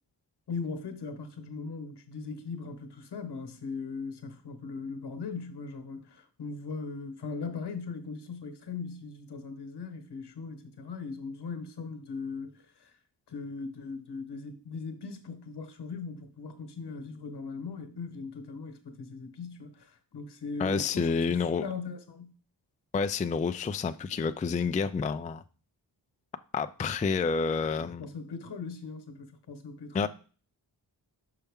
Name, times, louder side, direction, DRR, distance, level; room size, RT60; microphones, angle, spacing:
voice 1, 0.5-12.9 13.3-21.1 21.6-22.3 27.8-30.1, left 4 dB, 70° left, 1.1 m, -39 dB
voice 2, 20.6-21.7 22.9-25.4 26.5-28.0 29.9-30.1, left 5 dB, 20° left, 0.3 m, -29 dB
5.7 x 5.4 x 3.5 m
cardioid pair, 70°, 42 cm